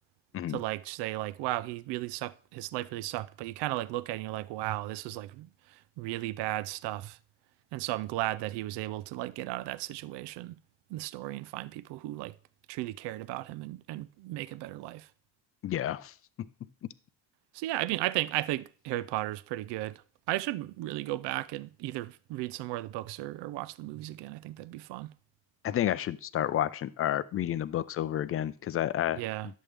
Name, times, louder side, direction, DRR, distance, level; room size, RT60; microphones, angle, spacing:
voice 1, 0.5-7.2 7.7-10.6 10.9-12.3 12.7-15.1 17.5-19.9 20.3-25.1 29.1-29.5, right 16 dB, 75° right, 0.5 m, -35 dB
voice 2, 15.6-16.5 16.8-16.9 25.6-29.2, left 11 dB, 35° left, 0.4 m, -30 dB
11.0 x 7.4 x 3.3 m
cardioid pair, 130°, 42 cm